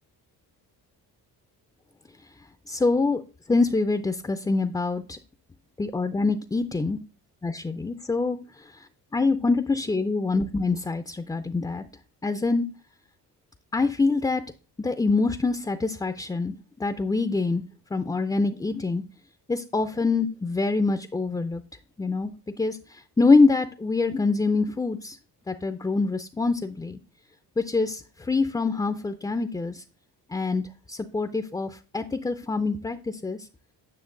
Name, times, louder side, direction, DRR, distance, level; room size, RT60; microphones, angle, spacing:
voice 1, 2.7-3.2 3.5-5.2 5.8-7.0 7.4-8.4 9.1-11.8 12.2-12.7 13.7-14.4 14.8-17.6 17.9-19.0 19.5-21.6 22.0-22.3 22.6-25.2 25.5-27.0 27.6-29.8 30.3-30.6 30.9-33.5, left 3 dB, 10° left, 10 dB, 0.5 m, -25 dB
9.6 x 6.1 x 3.8 m, 0.37 s
cardioid pair, 90°, 41 cm